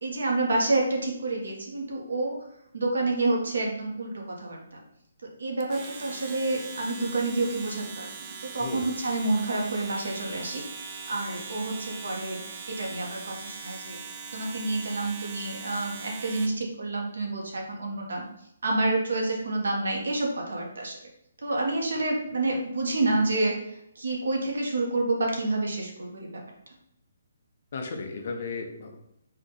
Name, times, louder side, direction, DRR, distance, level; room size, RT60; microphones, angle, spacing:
voice 1, 0.0-2.4 2.7-4.8 5.4-10.6 11.1-12.4 12.7-14.0 14.3-18.2 18.6-21.0 21.4-23.5 23.9-26.3, right 2 dB, 80° right, -1 dB, 1.4 m, -28 dB
Domestic sounds home sounds, 5.6-16.6, right 5 dB, 20° right, 0.4 m, -41 dB
voice 2, 27.7-29.0, left 4 dB, 40° left, 3 dB, 0.7 m, -35 dB
4.5 x 2.7 x 3.9 m, 0.75 s
hypercardioid pair, 175°, 0 cm